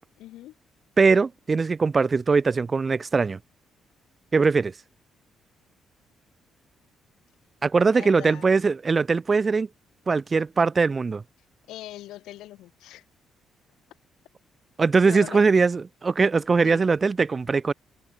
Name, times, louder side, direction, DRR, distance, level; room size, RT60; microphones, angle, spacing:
voice 1, 0.2-0.5 7.9-8.4 11.7-13.0 15.0-15.4 16.6-16.8, left 15 dB, 90° left, 1.5 m, -41 dB
voice 2, 1.0-3.4 4.3-4.7 7.6-9.7 10.1-11.2 14.8-17.7, right 4 dB, 30° right, 0.8 m, -21 dB
cardioid pair, 90°, 0 cm